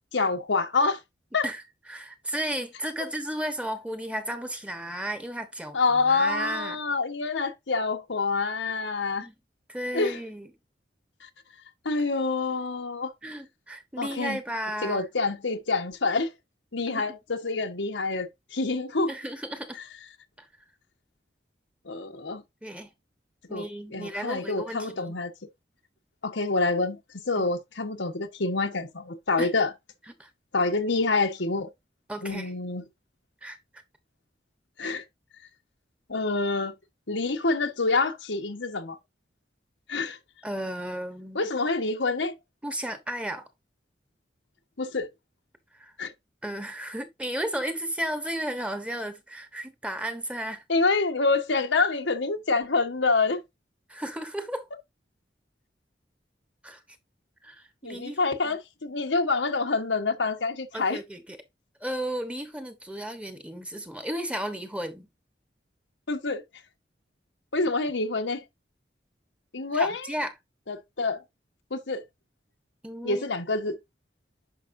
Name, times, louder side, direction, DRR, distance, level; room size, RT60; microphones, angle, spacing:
voice 1, 0.1-1.0 1.3-1.4 5.7-9.3 9.9-10.2 11.8-13.1 14.0-14.4 14.8-16.3 16.7-19.1 21.8-22.4 23.5-23.6 23.9-25.3 26.2-27.0 27.3-29.7 30.5-31.7 32.2-32.8 34.8-35.0 36.1-36.7 37.1-39.0 39.9-40.2 41.3-42.3 44.8-45.1 46.0-46.1 50.7-53.4 57.8-61.0 66.1-66.4 67.5-68.4 69.5-70.1 70.7-71.2 71.7-72.0 73.0-73.7, left 3 dB, 90° left, 1.3 m, -27 dB
voice 2, 1.9-6.8 9.2-9.3 9.7-10.5 13.2-15.1 16.9-17.1 19.1-19.8 20.4-20.5 22.6-22.9 23.5-25.1 27.3-27.5 29.4-29.5 30.2-30.3 32.1-32.5 33.4-33.6 34.8-35.0 40.4-41.4 42.6-43.4 45.7-45.9 46.4-50.6 53.9-54.7 56.6-56.8 57.4-58.2 58.4-58.6 60.7-61.4 61.8-65.1 69.7-70.3 72.8-73.2, right 1 dB, 5° right, 1.1 m, -34 dB
10.0 x 5.6 x 2.7 m
head